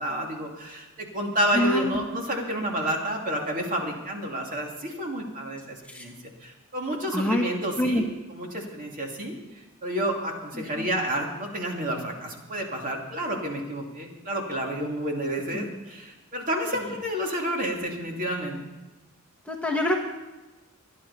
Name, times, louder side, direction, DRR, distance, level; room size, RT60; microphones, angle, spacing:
voice 1, 0.0-6.1 6.4-18.6, right 1 dB, 40° right, 0 dB, 2.7 m, -30 dB
voice 2, 1.5-2.0 5.9-6.0 7.1-7.4 7.8-8.0 10.8-10.9 15.6-15.8 19.5-20.0, left 1 dB, 5° left, 0 dB, 1.3 m, -25 dB
26.0 x 10.0 x 4.2 m, 1.1 s
head